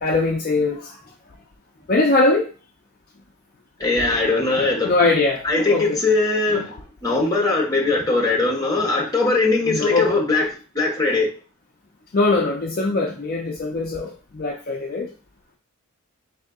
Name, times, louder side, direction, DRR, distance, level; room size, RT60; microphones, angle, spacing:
voice 1, 0.0-1.0 1.9-2.5 4.8-6.0 9.7-10.1 12.1-15.1, left 3 dB, 40° left, 1 dB, 0.4 m, -21 dB
voice 2, 3.8-4.9 5.4-10.5 10.7-11.3, left 3 dB, 15° left, -2 dB, 1.0 m, -20 dB
3.6 x 2.7 x 3.5 m, 0.35 s
head